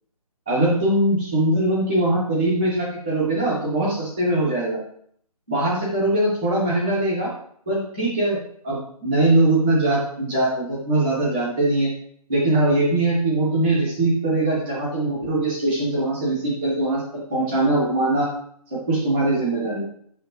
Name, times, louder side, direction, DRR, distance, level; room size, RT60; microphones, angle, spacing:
voice 1, 0.5-4.8 5.5-7.3 7.7-8.4 8.6-11.9 12.3-17.0 17.3-18.3 18.7-19.8, right 2 dB, 5° right, -14 dB, 0.3 m, -21 dB
6.1 x 5.8 x 2.9 m, 0.63 s
hypercardioid pair, 170°, 20 cm